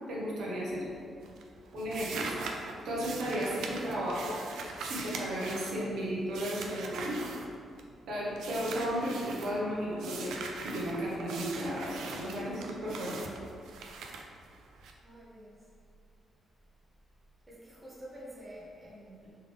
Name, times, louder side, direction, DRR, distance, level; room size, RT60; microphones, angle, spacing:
voice 1, 0.1-0.8 1.7-2.4 2.8-4.4 4.8-7.2 8.1-10.3 10.6-13.2, equal, 65° right, -5 dB, 1.0 m, -34 dB
sound 1, 0.5-1.0 1.2-8.0 8.4-9.5 10.0-14.9, right 4 dB, 80° right, 0.4 m, -42 dB
voice 2, 15.0-15.7 17.5-19.3, equal, 10° right, -7 dB, 0.7 m, -48 dB
3.7 x 3.4 x 3.3 m, 2.3 s
cardioid pair, 175°, 0 cm